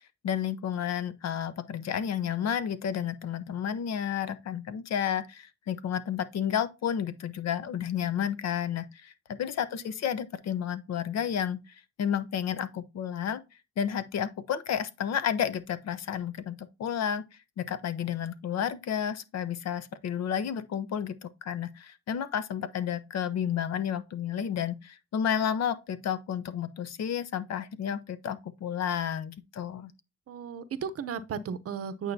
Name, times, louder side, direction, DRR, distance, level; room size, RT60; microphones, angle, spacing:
voice 1, 0.2-11.6 12.0-13.4 13.8-17.2 17.6-29.9, left 8 dB, 60° left, 0.7 m, -31 dB
voice 2, 9.7-10.0 30.3-32.1, right 7 dB, 50° right, 0.7 m, -35 dB
8.8 x 4.6 x 2.6 m
cardioid pair, 90°, 30 cm